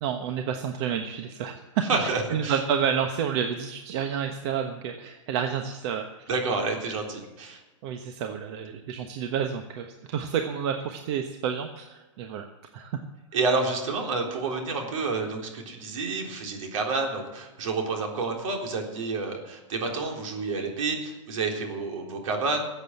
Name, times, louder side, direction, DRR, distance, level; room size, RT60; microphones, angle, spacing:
voice 1, 0.0-6.1 7.8-12.5 12.7-13.0, right 8 dB, 55° right, 5 dB, 1.2 m, -30 dB
voice 2, 1.9-2.6 6.3-7.6 13.3-22.6, right 3 dB, 75° right, 1 dB, 3.7 m, -29 dB
14.5 x 8.0 x 7.8 m, 1.1 s
hypercardioid pair, 130°, 17 cm